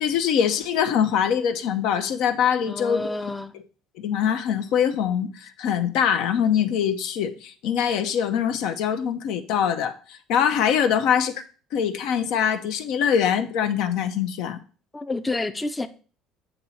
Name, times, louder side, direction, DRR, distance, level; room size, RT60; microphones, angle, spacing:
voice 1, 0.0-3.2 4.0-11.3 11.7-14.6, left 8 dB, 75° left, 0.7 m, -23 dB
voice 2, 2.7-3.5 14.9-15.9, left 2 dB, 15° left, 0.5 m, -29 dB
7.9 x 3.0 x 5.6 m
supercardioid pair, 100°, 0 cm